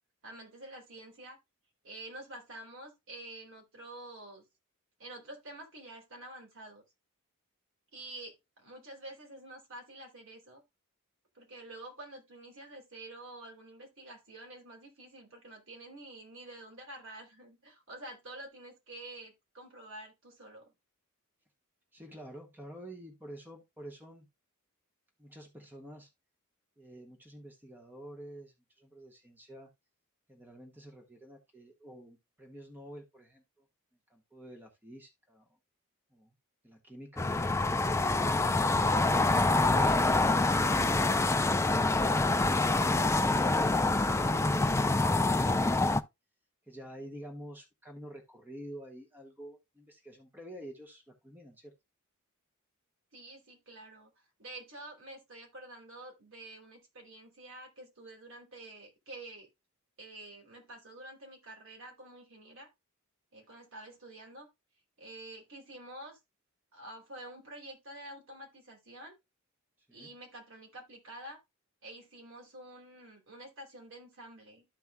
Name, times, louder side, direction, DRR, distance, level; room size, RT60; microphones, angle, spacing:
voice 1, 0.2-1.4 1.8-4.4 5.0-6.8 7.9-10.6 11.3-20.7 53.1-54.1 54.4-59.5 60.0-62.7 63.3-64.5 65.0-66.2 66.7-69.1 69.9-71.4 71.8-74.6, right 1 dB, 60° right, 2.9 m, -48 dB
voice 2, 21.9-24.3 25.2-26.1 26.8-29.7 30.3-33.6 34.1-35.5 36.1-36.3 36.6-38.4 45.5-46.1 46.7-51.7 69.9-70.1, right 1 dB, 10° right, 1.4 m, -49 dB
sound 1, 37.2-46.0, left 2 dB, 15° left, 0.4 m, -26 dB
13.5 x 4.6 x 2.2 m
head